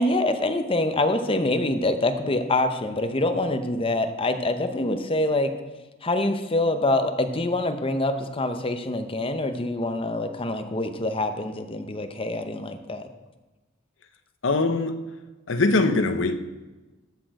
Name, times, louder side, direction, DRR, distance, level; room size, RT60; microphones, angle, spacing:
voice 1, 0.0-5.5 6.0-13.0, left 2 dB, 30° left, 8 dB, 0.8 m, -25 dB
voice 2, 14.4-15.0 15.5-16.4, left 3 dB, 70° left, 8 dB, 0.8 m, -22 dB
14.0 x 6.5 x 4.8 m, 1.2 s
head